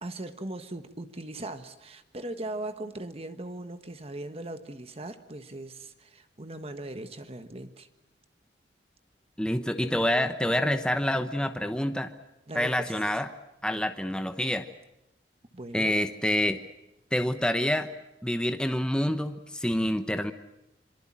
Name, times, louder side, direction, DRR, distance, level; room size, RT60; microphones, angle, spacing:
voice 1, 0.0-7.9 12.5-12.9 15.5-15.9, right 2 dB, 35° right, 9 dB, 1.4 m, -39 dB
voice 2, 9.4-12.1 12.5-13.3 13.6-14.6 15.7-16.6 17.1-17.9 18.2-20.3, left 1 dB, 5° left, 8 dB, 1.0 m, -27 dB
26.5 x 23.5 x 7.5 m, 0.91 s
head